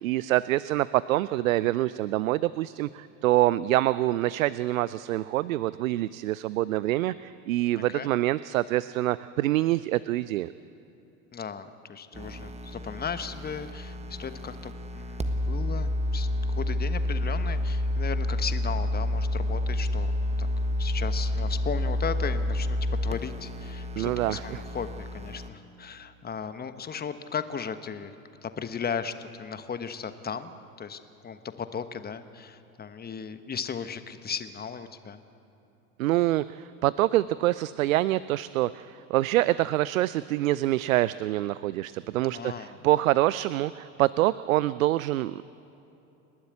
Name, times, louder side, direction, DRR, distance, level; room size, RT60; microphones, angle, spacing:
voice 1, 0.0-10.5 24.0-24.6 36.0-45.4, right 16 dB, 70° right, 17 dB, 0.6 m, -26 dB
voice 2, 7.7-8.1 11.3-16.3 16.6-20.1 20.4-20.5 20.8-28.1 28.4-30.5 30.8-35.2 42.3-42.8, left 6 dB, 20° left, 10 dB, 1.3 m, -36 dB
sound 1, 12.1-25.5, left 1 dB, 15° right, 1.4 m, -29 dB
29.5 x 12.0 x 8.6 m, 2.9 s
figure-of-eight pair, 75°, 42 cm